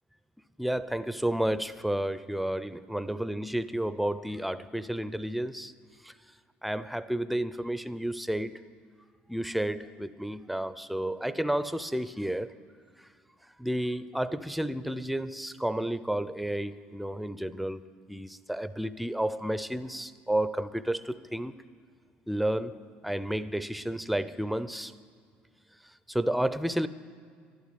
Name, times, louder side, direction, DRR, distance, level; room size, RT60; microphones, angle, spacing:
voice 1, 0.6-5.7 6.0-6.1 6.6-8.6 9.3-12.5 13.6-17.8 18.1-21.5 22.3-22.8 23.0-24.9 26.1-26.9, right 1 dB, ahead, 0.4 m, -31 dB
12.0 x 11.5 x 8.1 m
cardioid pair, 125°, 4 cm